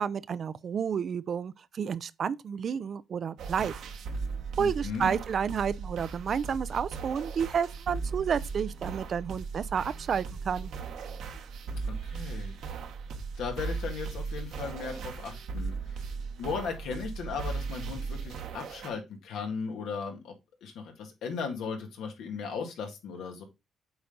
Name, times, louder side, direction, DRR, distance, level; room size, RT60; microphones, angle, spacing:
voice 1, 0.0-3.7 4.6-10.7, right 7 dB, 55° right, 0.5 m, -30 dB
sound 1, 3.4-18.9, right 4 dB, 80° right, 1.4 m, -37 dB
voice 2, 4.6-5.1 12.0-12.5 13.4-16.1 16.4-20.3 20.6-23.4, left 5 dB, 85° left, 1.9 m, -37 dB
7.9 x 4.1 x 3.9 m
cardioid pair, 90°, 0 cm